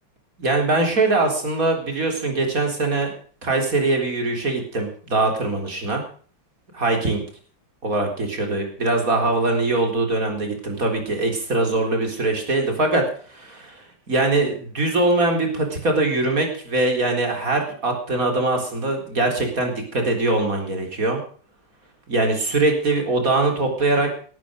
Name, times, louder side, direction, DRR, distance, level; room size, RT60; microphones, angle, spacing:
voice 1, 0.4-3.1 3.4-6.0 6.7-7.2 7.8-13.0 13.3-21.2 22.1-24.1, right 2 dB, 45° right, 3 dB, 4.4 m, -22 dB
17.5 x 13.0 x 5.2 m, 0.43 s
omnidirectional pair, 2.0 m